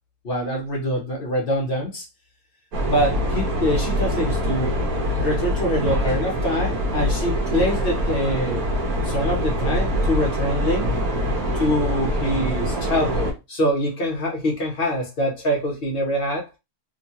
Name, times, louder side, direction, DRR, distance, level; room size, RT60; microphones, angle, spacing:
voice 1, 0.2-2.0 2.9-4.8 5.1-8.6 9.0-10.9 11.5-16.5, equal, 50° left, 0.7 m, -24 dB
sound 1, 2.7-13.3, equal, 65° right, 1.2 m, -24 dB
3.0 x 2.1 x 2.7 m
omnidirectional pair, 1.7 m